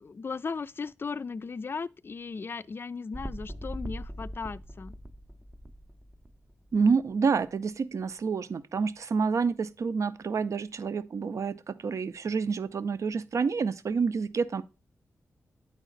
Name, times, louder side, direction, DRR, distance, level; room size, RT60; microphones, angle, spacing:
voice 1, 0.0-4.9, left 5 dB, 40° left, 0.3 m, -37 dB
sound 1, 3.1-6.9 7.5-7.6, equal, 15° right, 0.5 m, -41 dB
voice 2, 6.7-14.6, right 5 dB, 65° right, 0.5 m, -28 dB
9.2 x 4.1 x 3.8 m
cardioid pair, 60°, 6 cm